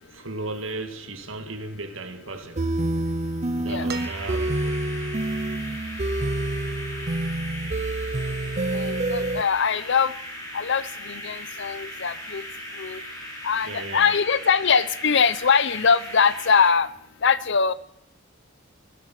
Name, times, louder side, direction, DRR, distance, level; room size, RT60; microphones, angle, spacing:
voice 1, 0.1-2.6 3.5-4.8 13.6-14.2, right 2 dB, 75° right, 1.8 m, -35 dB
sound 1, 2.6-9.4, right 2 dB, 35° right, 0.6 m, -27 dB
sound 2, 3.9-16.7, equal, 20° left, 4.3 m, -38 dB
sound 3, 3.9-4.9 6.4-6.5, right 5 dB, 50° right, 1.3 m, -39 dB
voice 2, 8.7-10.1 10.5-12.4 12.8-13.0 13.4-16.9 17.2-17.7, left 6 dB, 60° left, 0.7 m, -22 dB
16.5 x 12.0 x 5.8 m
head